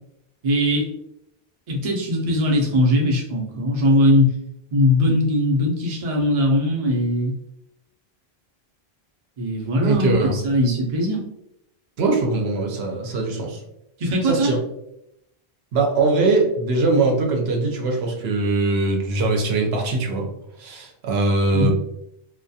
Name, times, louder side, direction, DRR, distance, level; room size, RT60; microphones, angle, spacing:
voice 1, 0.4-0.9 1.7-4.3 4.7-7.4 9.4-11.2 14.0-14.5 21.5-21.7, left 1 dB, 45° right, -1 dB, 0.6 m, -20 dB
voice 2, 9.8-10.4 12.0-13.6 14.2-14.6 15.7-20.3 20.6-21.7, right 3 dB, 80° right, 1 dB, 0.8 m, -21 dB
2.3 x 2.2 x 2.6 m, 0.81 s
omnidirectional pair, 1.1 m